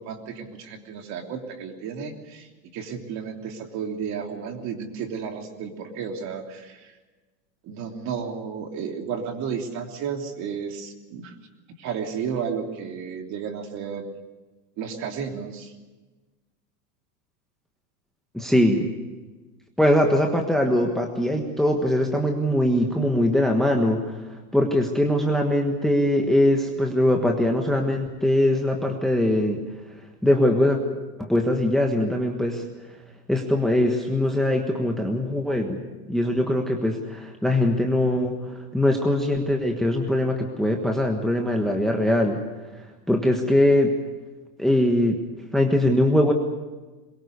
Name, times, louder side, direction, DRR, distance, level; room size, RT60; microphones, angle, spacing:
voice 1, 0.0-6.9 7.6-11.4 11.8-14.1 14.8-15.7, right 6 dB, 40° right, 4 dB, 3.2 m, -33 dB
voice 2, 18.3-18.9 19.8-29.6 30.2-30.8 31.2-32.6 33.3-35.8 36.1-42.4 43.1-43.9 44.6-45.2 45.5-46.3, left 1 dB, ahead, 2 dB, 1.4 m, -22 dB
22.5 x 22.0 x 6.8 m, 1.2 s
supercardioid pair, 150°, 45 cm